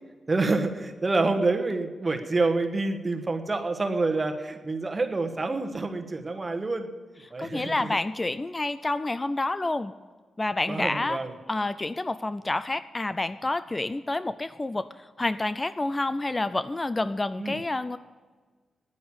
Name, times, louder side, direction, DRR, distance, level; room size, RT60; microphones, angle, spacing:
voice 1, 0.3-6.9 7.3-8.0 10.7-11.3 17.4-17.6, right 3 dB, 30° right, 5 dB, 1.3 m, -27 dB
voice 2, 7.4-9.9 10.4-11.2 11.5-18.0, left 2 dB, 25° left, 14 dB, 0.4 m, -29 dB
10.0 x 9.3 x 8.7 m, 1.4 s
cardioid pair, 80°, 0 cm